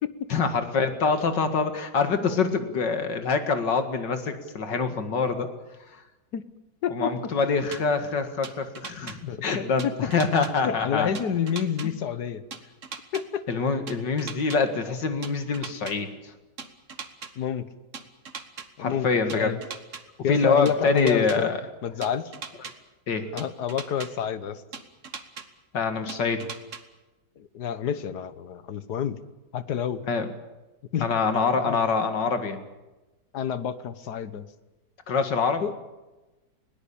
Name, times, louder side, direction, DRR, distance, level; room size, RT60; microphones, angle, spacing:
voice 1, 0.3-5.5 5.9-6.0 6.9-11.1 13.5-16.1 18.8-19.5 20.3-21.6 23.1-23.3 25.7-26.5 30.1-30.3 31.0-32.6 35.1-35.6, left 4 dB, 85° left, 8 dB, 2.6 m, -25 dB
voice 2, 6.8-7.3 9.3-10.1 10.6-12.4 13.1-13.4 17.4-17.7 18.8-19.6 20.2-21.5 21.8-22.3 23.3-24.6 27.4-29.2 29.5-30.1 30.9-31.1 31.6-31.8 33.3-34.5 35.6-35.7, left 8 dB, 70° left, 14 dB, 1.7 m, -29 dB
sound 1, 7.7-7.8 8.4-9.2 9.8-10.5 11.1-11.9 12.5-13.2 13.9-14.6 15.2-15.9 16.6-17.3 17.9-18.7 19.3-20.0 20.7-21.4 22.0-22.7 23.4-24.1 24.7-25.4 26.1-26.8, right 5 dB, 45° right, 1.8 m, -38 dB
21.0 x 18.5 x 8.6 m, 1.1 s
omnidirectional pair, 1.8 m